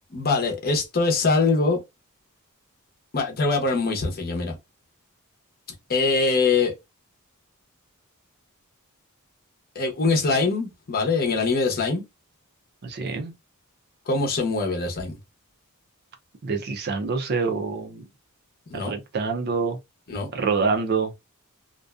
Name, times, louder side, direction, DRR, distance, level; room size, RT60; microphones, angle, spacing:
voice 1, 0.1-1.8 3.1-4.6 5.9-6.7 9.7-12.0 14.1-15.2 18.7-18.9 20.1-20.3, left 3 dB, 45° left, 0.7 m, -23 dB
voice 2, 12.8-13.3 16.4-18.0 18.7-19.8 20.3-21.1, right 4 dB, 45° right, 0.5 m, -26 dB
2.5 x 2.2 x 2.3 m
head